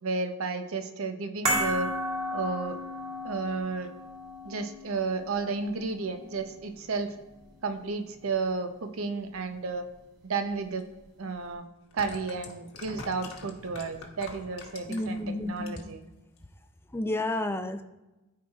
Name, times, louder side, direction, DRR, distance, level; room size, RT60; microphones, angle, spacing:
voice 1, 0.0-1.9 2.3-2.8 3.2-3.9 4.4-7.1 7.6-9.9 10.2-10.8 11.2-11.6 11.9-16.0, right 4 dB, 75° right, 7 dB, 0.7 m, -32 dB
sound 1, 1.5-7.9 8.1-8.3, equal, 30° right, 2.0 m, -34 dB
sound 2, 10.8-10.9 11.8-15.2 15.6-16.1 16.4-16.5, left 3 dB, 70° left, 1.2 m, -44 dB
voice 2, 14.9-15.7 16.9-17.8, left 1 dB, 10° left, 8 dB, 0.4 m, -31 dB
13.5 x 4.7 x 2.4 m, 1.0 s
head